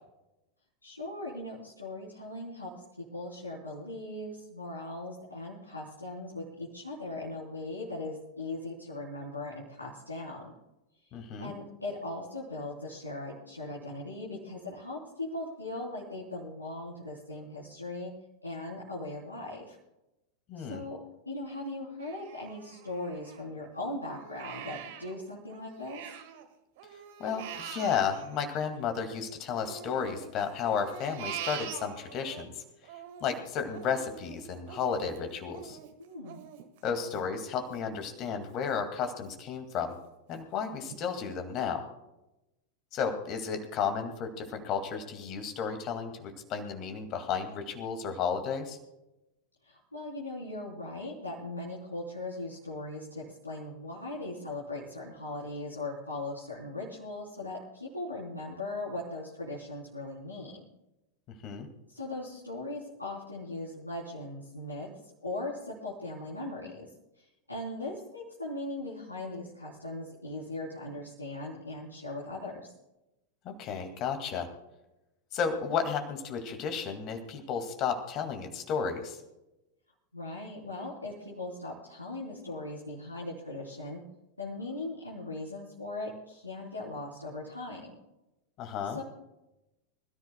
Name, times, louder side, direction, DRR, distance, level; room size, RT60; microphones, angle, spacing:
voice 1, 0.8-2.7 3.1-10.5 11.4-18.1 18.4-19.8 20.6-21.0 21.2-26.0 36.0-36.4 49.6-60.7 61.9-64.9 65.2-66.9 67.5-72.7 80.1-84.0 84.4-87.9 88.8-89.0, left 2 dB, 85° left, -6 dB, 3.4 m, -39 dB
voice 2, 11.1-11.5 20.5-20.8 27.2-32.6 33.2-35.8 36.8-40.0 40.3-41.8 42.9-48.8 61.4-61.7 73.4-74.5 75.3-79.2 88.6-89.0, left 6 dB, 35° left, 6 dB, 2.0 m, -33 dB
Crying sobbing, 22.0-23.7 24.1-26.5 26.8-29.2 29.6-32.4 32.8-38.3 38.7-38.8 39.3-39.8 40.3-40.4 40.9-41.0, right 10 dB, 50° right, 1.4 m, -44 dB
25.5 x 14.0 x 2.2 m, 0.94 s
figure-of-eight pair, 90°, 0 cm